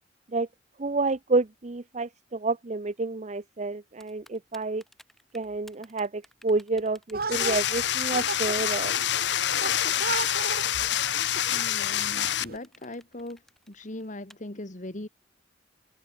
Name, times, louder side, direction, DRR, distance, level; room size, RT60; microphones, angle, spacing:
voice 1, 0.8-4.8 5.3-8.9, right 3 dB, 40° right, 0.8 m, -29 dB
Typing, 4.0-14.3, equal, ahead, 7.1 m, -54 dB
sound 1, 7.1-12.6, right 4 dB, 55° right, 2.5 m, -37 dB
sound 2, 7.3-12.4, left 11 dB, 70° left, 0.8 m, -27 dB
voice 2, 11.5-13.4 13.7-15.1, left 1 dB, 45° left, 2.0 m, -39 dB
head